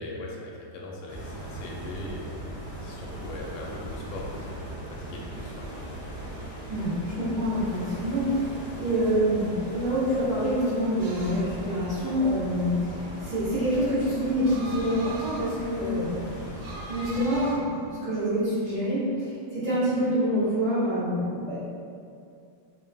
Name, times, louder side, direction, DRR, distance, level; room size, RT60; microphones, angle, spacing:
voice 1, 0.0-2.3 2.8-5.7, left 2 dB, 80° left, -2 dB, 1.3 m, -40 dB
sound 1, 1.1-17.6, right 1 dB, 15° right, 0.6 m, -39 dB
voice 2, 6.7-8.3 8.8-16.3 16.9-21.6, equal, 45° right, -12 dB, 1.4 m, -26 dB
sound 2, 11.0-18.7, right 2 dB, 90° right, 1.5 m, -43 dB
3.4 x 2.7 x 3.4 m, 2.4 s
omnidirectional pair, 2.2 m